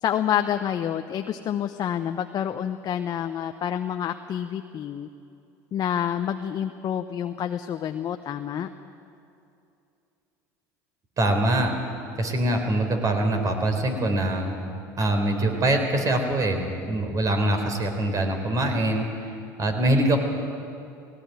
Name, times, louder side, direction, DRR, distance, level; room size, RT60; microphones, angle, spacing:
voice 1, 0.0-5.1 5.7-8.7, left 9 dB, 45° left, 7 dB, 0.9 m, -28 dB
voice 2, 11.2-11.7 12.2-14.6 15.0-19.1 19.6-20.2, right 1 dB, 35° right, 5 dB, 4.1 m, -23 dB
18.5 x 18.0 x 9.4 m, 2.6 s
hypercardioid pair, 85°, 10 cm